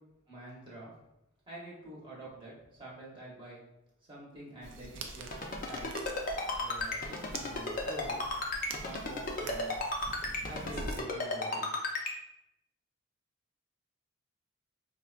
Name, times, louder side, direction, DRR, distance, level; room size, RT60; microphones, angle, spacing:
voice 1, 0.3-0.9 1.5-3.6 4.1-5.4 5.7-5.9 6.4-8.2 8.8-9.8 10.4-11.7, right 1 dB, 25° right, -6 dB, 0.9 m, -47 dB
sound 1, 4.6-11.0, right 3 dB, 60° right, 0.4 m, -45 dB
Ringtone, 5.3-12.1, left 2 dB, 40° left, 0.5 m, -33 dB
4.4 x 2.1 x 2.4 m, 0.86 s
head